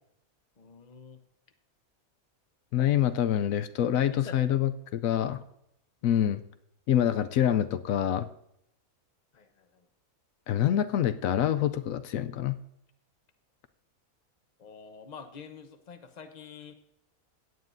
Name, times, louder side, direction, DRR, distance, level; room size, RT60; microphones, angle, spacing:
voice 1, 0.6-1.2 4.1-4.5 5.2-5.3 6.0-6.3 9.3-9.9 14.6-16.7, left 5 dB, 35° left, 7 dB, 0.9 m, -47 dB
voice 2, 2.7-5.4 6.0-6.4 6.9-8.3 10.5-12.6, left 10 dB, 80° left, 11 dB, 1.0 m, -26 dB
16.5 x 9.5 x 2.6 m, 0.78 s
omnidirectional pair, 1.4 m